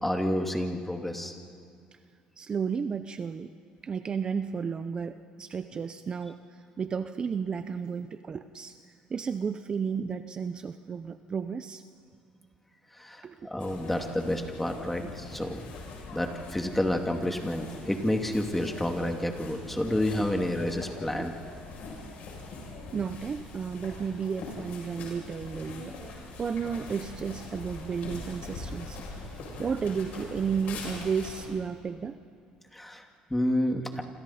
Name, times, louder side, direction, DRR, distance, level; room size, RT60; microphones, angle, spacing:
voice 1, 0.0-1.4 12.9-15.6 16.1-21.3 32.7-34.0, left 1 dB, 5° left, 3 dB, 2.5 m, -29 dB
voice 2, 2.4-3.5 3.8-6.4 6.8-8.7 9.1-11.8 13.2-13.5 15.0-15.1 20.2-20.3 21.2-21.3 22.9-25.9 26.4-29.0 29.6-32.2, right 6 dB, 35° right, 10 dB, 0.8 m, -33 dB
sound 1, 13.6-31.4, left 3 dB, 70° left, 7.5 m, -42 dB
28.0 x 27.0 x 4.4 m, 2.3 s
cardioid pair, 105°, 3 cm